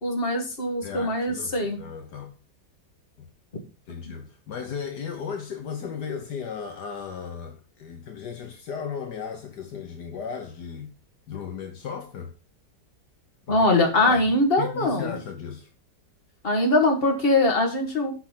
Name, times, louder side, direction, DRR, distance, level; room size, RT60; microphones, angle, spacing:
voice 1, 0.0-1.8 13.5-15.2 16.4-18.1, left 2 dB, 30° left, 2.3 m, -22 dB
voice 2, 0.8-2.4 3.2-3.3 3.9-10.9 11.3-12.3 13.5-13.7 14.0-14.2 14.6-15.7, left 6 dB, 70° left, 1.7 m, -35 dB
8.5 x 5.8 x 5.7 m
omnidirectional pair, 1.9 m